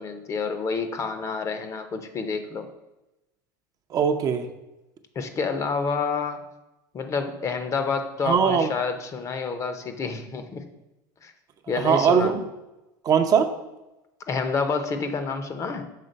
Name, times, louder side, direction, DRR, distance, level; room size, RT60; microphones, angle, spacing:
voice 1, 0.0-2.7 5.2-6.5 6.9-10.6 11.2-11.3 11.7-12.3 14.3-15.8, left 5 dB, 30° left, 9 dB, 0.7 m, -28 dB
voice 2, 3.9-4.5 8.3-8.7 11.8-12.5 13.0-13.5, right 7 dB, 35° right, 6 dB, 0.6 m, -20 dB
6.6 x 3.7 x 5.1 m, 0.98 s
supercardioid pair, 110°, 10 cm